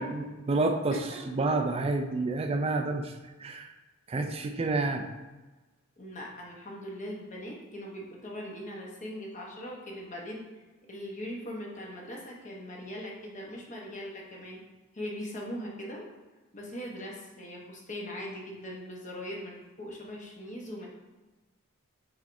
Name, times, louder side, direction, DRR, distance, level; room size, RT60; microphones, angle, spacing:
voice 1, 0.0-3.1 3.4-3.7 4.1-5.1, right 3 dB, 30° right, 5 dB, 0.4 m, -29 dB
voice 2, 6.0-10.4 10.9-14.6 14.9-16.0 16.5-20.9, equal, 35° left, -2 dB, 1.0 m, -40 dB
6.0 x 3.4 x 2.6 m, 1.2 s
head